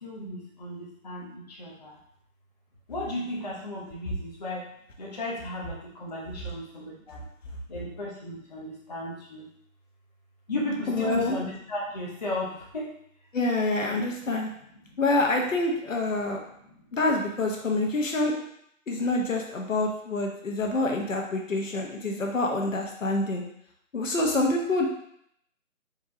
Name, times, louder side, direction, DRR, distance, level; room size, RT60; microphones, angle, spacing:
voice 1, 0.0-2.0 2.9-4.7 5.0-7.2 7.7-9.5 10.5-12.9, left 1 dB, 30° left, -5 dB, 0.8 m, -35 dB
voice 2, 10.9-11.4 13.3-14.5 15.0-16.4 16.9-18.3 18.9-23.4 23.9-24.9, left 2 dB, 65° left, 1 dB, 1.1 m, -26 dB
4.4 x 3.1 x 3.7 m, 0.71 s
figure-of-eight pair, 160°, 42 cm